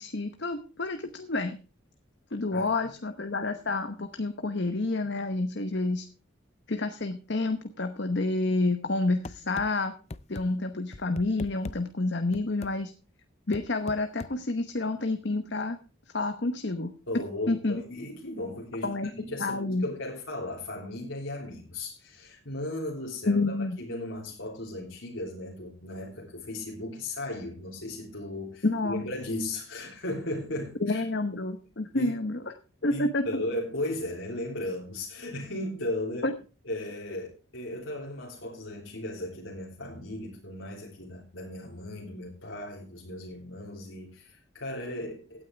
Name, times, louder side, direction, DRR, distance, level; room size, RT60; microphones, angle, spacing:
voice 1, 0.0-1.6 2.3-6.1 6.7-9.9 10.3-12.9 13.5-15.8 16.1-17.8 18.8-19.1 19.4-19.8 23.3-23.8 28.6-29.1 30.8-32.4 32.8-33.2 36.2-36.3, left 2 dB, 55° left, 8 dB, 1.0 m, -29 dB
sound 1, 9.2-9.7 10.1-10.4 10.9-11.8 12.3-12.7 13.5-14.3, left 2 dB, 30° left, 0.5 m, -39 dB
voice 2, 17.1-31.1 31.9-32.1 32.9-36.3 36.6-45.4, left 1 dB, 75° left, -2 dB, 3.3 m, -36 dB
16.5 x 9.3 x 3.4 m, 0.35 s
head